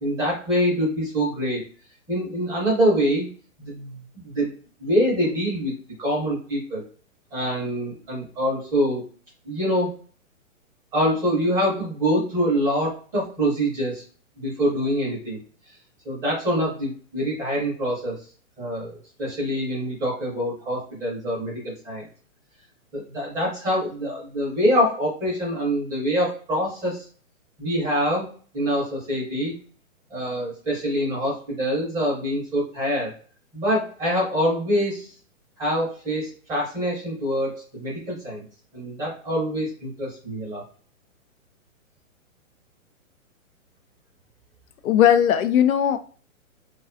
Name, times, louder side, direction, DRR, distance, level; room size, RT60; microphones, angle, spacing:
voice 1, 0.0-1.6 2.1-3.3 3.6-4.5 4.8-5.7 6.0-6.8 7.3-9.0 9.4-9.9 10.9-14.0 14.4-15.4 16.0-18.2 18.6-22.1 22.9-27.1 27.6-29.5 30.1-33.1 33.5-35.1 35.6-38.4 38.7-40.6, equal, 10° right, -6 dB, 0.5 m, -25 dB
voice 2, 44.8-46.0, left 10 dB, 80° left, 10 dB, 0.5 m, -18 dB
2.5 x 2.3 x 2.4 m, 0.43 s
hypercardioid pair, 145°, 41 cm